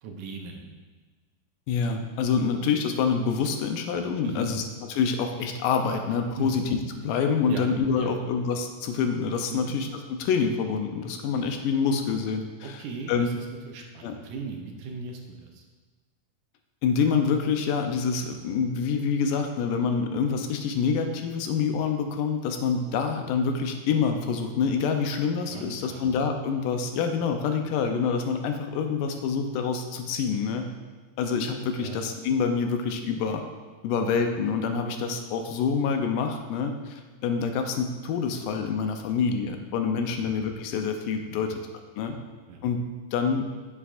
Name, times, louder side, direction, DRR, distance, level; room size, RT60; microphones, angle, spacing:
voice 1, 0.0-0.7 4.2-4.5 6.4-6.7 7.5-7.6 8.0-8.1 9.5-9.7 12.6-15.7 25.5-26.1 31.8-32.0 40.1-40.3 41.3-41.5 42.1-42.2 42.5-42.6, right 4 dB, 75° right, 2 dB, 2.1 m, -38 dB
voice 2, 1.7-4.6 4.9-12.8 13.1-13.3 14.0-14.1 16.8-30.7 31.2-33.4 33.8-41.5 42.0-42.2 42.6-43.5, left 5 dB, 80° left, 5 dB, 2.3 m, -26 dB
10.0 x 7.3 x 2.5 m, 1.4 s
omnidirectional pair, 3.9 m